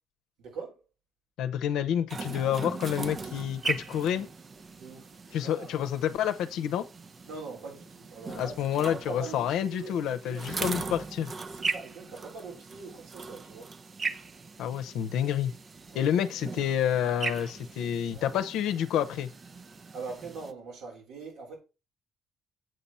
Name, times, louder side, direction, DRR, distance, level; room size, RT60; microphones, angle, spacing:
voice 1, 0.4-0.8 2.3-2.7 3.2-3.4 3.9-4.3 4.7-5.7 7.2-10.5 11.5-13.8 15.9-16.6 17.5-18.7 19.9-21.6, right 4 dB, 85° right, 3.4 m, -43 dB
voice 2, 1.4-4.3 5.3-6.9 8.3-11.3 14.6-15.5 15.9-19.3, left 10 dB, 90° left, 0.6 m, -29 dB
sound 1, 2.1-20.5, right 4 dB, 40° right, 0.6 m, -39 dB
7.9 x 4.3 x 5.4 m
cardioid pair, 90°, 0 cm